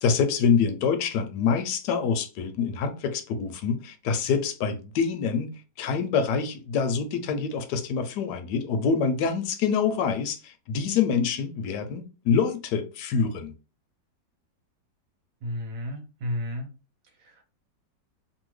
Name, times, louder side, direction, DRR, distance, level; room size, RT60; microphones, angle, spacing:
voice 1, 0.0-5.5 5.8-13.5, left 6 dB, 75° left, 1.1 m, -26 dB
voice 2, 15.4-16.7 17.2-17.4, left 1 dB, 55° right, 1.2 m, -32 dB
2.7 x 2.7 x 3.1 m
omnidirectional pair, 1.9 m